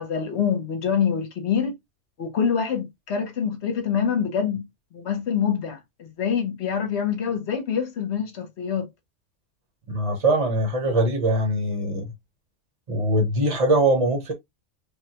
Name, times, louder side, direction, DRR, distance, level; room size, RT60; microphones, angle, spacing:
voice 1, 0.0-1.7 2.2-4.6 4.9-8.9, left 7 dB, 60° left, 1.1 m, -25 dB
voice 2, 9.9-12.1 12.9-14.3, right 1 dB, 30° right, 0.9 m, -22 dB
3.4 x 2.2 x 2.7 m
omnidirectional pair, 1.3 m